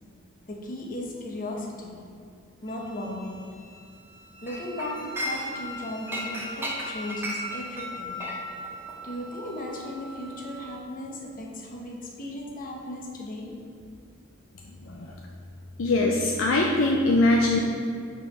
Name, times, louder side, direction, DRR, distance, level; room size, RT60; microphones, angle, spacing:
voice 1, 0.5-2.0 2.6-3.5 4.4-8.2 9.0-13.5, left 1 dB, 45° left, 0 dB, 1.0 m, -36 dB
Wind instrument woodwind instrument, 2.7-10.8, left 1 dB, 20° left, 0.6 m, -42 dB
Chink clink, 4.5-5.7 6.1-10.7 11.0-11.2, right 1 dB, 10° right, 0.8 m, -36 dB
voice 2, 14.8-15.1 15.8-17.6, left 2 dB, 65° left, 0 dB, 0.5 m, -22 dB
5.3 x 4.8 x 5.9 m, 2.3 s
head